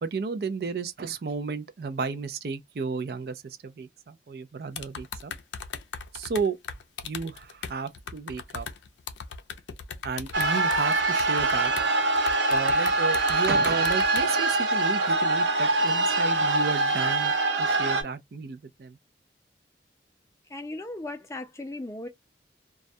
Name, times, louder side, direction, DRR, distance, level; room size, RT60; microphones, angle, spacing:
voice 1, 0.0-5.3 6.1-6.6 7.0-8.7 10.0-11.7 12.5-17.3 17.6-19.0, right 5 dB, 60° right, 0.4 m, -33 dB
sound 1, 4.8-11.9 12.1-14.3, left 6 dB, 90° left, 0.4 m, -38 dB
sound 2, 10.3-18.0, right 2 dB, 90° right, 0.8 m, -24 dB
voice 2, 20.5-22.1, left 2 dB, 15° left, 0.4 m, -37 dB
2.3 x 2.1 x 2.5 m
head